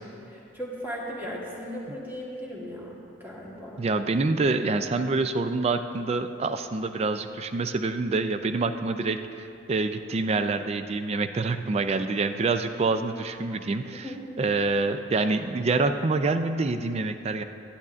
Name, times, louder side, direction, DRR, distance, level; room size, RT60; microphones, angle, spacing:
voice 1, 0.3-3.8 14.0-14.2, equal, 10° right, -4 dB, 1.3 m, -37 dB
voice 2, 3.8-14.1 14.4-17.4, right 3 dB, 30° right, 9 dB, 0.3 m, -26 dB
11.5 x 10.5 x 2.4 m, 2.7 s
head